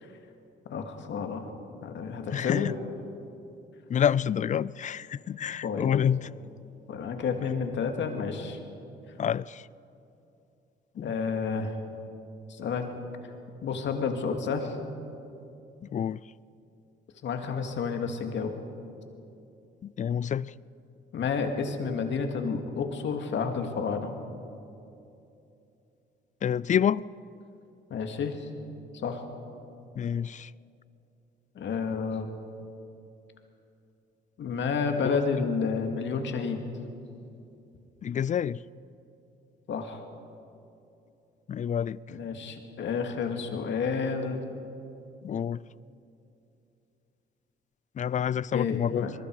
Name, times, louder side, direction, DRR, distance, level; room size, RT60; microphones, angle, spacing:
voice 1, 0.7-1.4 1.8-2.7 5.6-5.9 6.9-8.6 10.9-11.7 12.5-12.9 13.6-14.8 17.2-18.5 21.1-24.1 27.9-28.5 28.9-29.2 31.6-32.3 34.4-36.7 39.7-40.0 42.1-44.4 48.5-49.1, left 5 dB, 70° left, 2.2 m, -30 dB
voice 2, 2.3-2.7 3.9-6.3 9.2-9.6 11.0-11.1 15.9-16.2 19.8-20.5 26.4-27.0 30.0-30.5 35.0-35.1 38.0-38.6 41.5-42.0 45.2-45.6 48.0-49.1, left 8 dB, 40° left, 0.4 m, -28 dB
25.0 x 22.0 x 4.8 m
cardioid pair, 90°, 20 cm